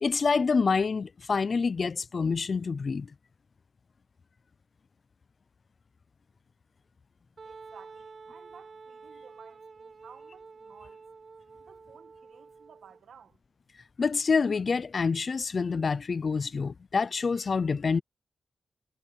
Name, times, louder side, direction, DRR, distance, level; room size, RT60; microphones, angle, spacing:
voice 1, 0.0-3.1 14.0-18.0, left 5 dB, 55° left, 0.5 m, -27 dB
Wind instrument woodwind instrument, 7.4-13.0, right 4 dB, 55° right, 1.8 m, -49 dB
voice 2, 7.4-11.0 11.6-13.4, right 7 dB, 90° right, 1.9 m, -55 dB
cardioid pair, 85°, 0 cm